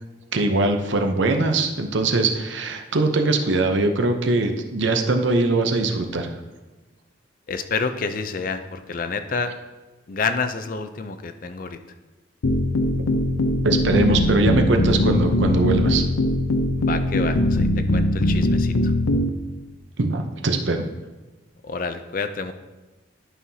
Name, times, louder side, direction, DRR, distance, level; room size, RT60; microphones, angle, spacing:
voice 1, 0.3-6.3 13.6-16.1 20.0-20.9, right 2 dB, 65° right, 5 dB, 0.7 m, -21 dB
voice 2, 7.5-9.5 10.1-11.8 16.8-18.9 21.6-22.5, left 4 dB, 45° left, 9 dB, 0.4 m, -28 dB
sound 1, 12.4-19.3, left 1 dB, 90° left, 0.6 m, -21 dB
11.0 x 5.6 x 2.8 m, 1.2 s
head